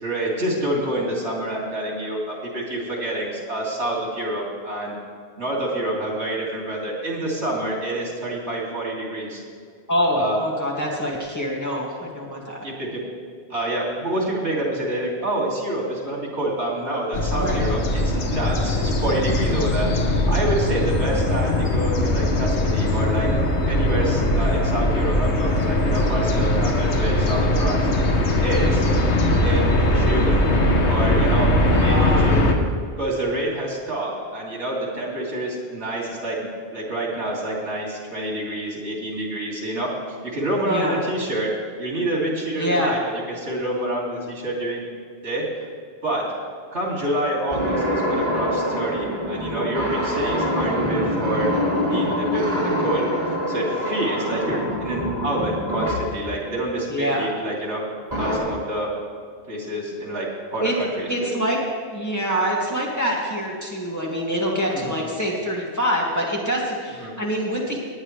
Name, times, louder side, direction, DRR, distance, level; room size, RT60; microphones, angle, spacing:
voice 1, 0.0-5.0 5.4-9.4 10.1-10.4 12.6-13.0 13.5-19.9 20.3-23.3 23.7-27.8 28.4-28.8 29.4-30.4 30.8-32.5 33.0-36.4 36.7-39.9 40.2-41.5 41.8-44.9 45.2-45.7 46.0-46.2 46.7-51.5 51.9-53.0 53.5-57.8 58.2-58.9 59.5-60.3 60.5-61.3 64.7-65.0 67.0-67.1, right 1 dB, 90° right, -3 dB, 3.1 m, -27 dB
voice 2, 9.9-12.6 17.4-17.6 31.7-32.3 40.6-41.0 42.6-43.0 54.3-54.6 56.9-57.3 60.6-60.7 61.1-61.6 61.9-67.8, equal, 15° left, -4 dB, 2.2 m, -25 dB
sound 1, 17.1-32.6, left 1 dB, 80° left, 1.4 m, -20 dB
sound 2, 47.5-56.1 58.1-58.4, equal, 35° right, 3.2 m, -25 dB
19.5 x 9.7 x 3.3 m, 2.1 s
omnidirectional pair, 1.1 m